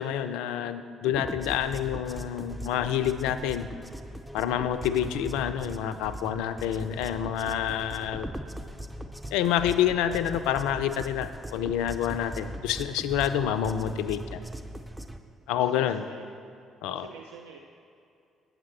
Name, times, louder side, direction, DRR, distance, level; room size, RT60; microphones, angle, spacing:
voice 1, 0.0-3.7 4.3-8.3 9.3-14.4 15.5-16.1 16.8-17.1, left 10 dB, 65° left, 11 dB, 0.3 m, -28 dB
sound 1, 1.1-15.2, right 1 dB, 5° right, 0.5 m, -40 dB
voice 2, 15.5-16.3 16.9-17.6, right 5 dB, 75° right, 2 dB, 0.3 m, -46 dB
9.2 x 7.5 x 4.0 m, 2.4 s
figure-of-eight pair, 45°, 0 cm